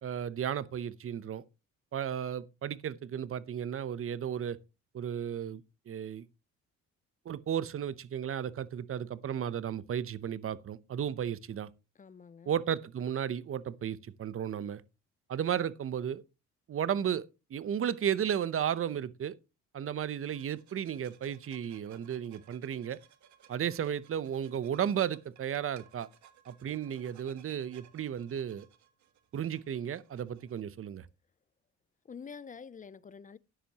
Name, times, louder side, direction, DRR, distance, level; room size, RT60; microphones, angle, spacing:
voice 1, 0.0-1.4 1.9-4.6 4.9-6.3 7.3-11.7 12.5-14.8 15.3-16.2 16.7-19.4 19.7-23.0 23.5-26.1 26.5-28.7 29.3-31.1, right 9 dB, 45° right, 0.7 m, -34 dB
voice 2, 12.0-12.5 32.1-33.4, left 6 dB, 25° left, 0.5 m, -47 dB
sound 1, 20.3-30.6, right 10 dB, 70° right, 1.4 m, -61 dB
12.5 x 10.0 x 2.9 m
cardioid pair, 90°, 30 cm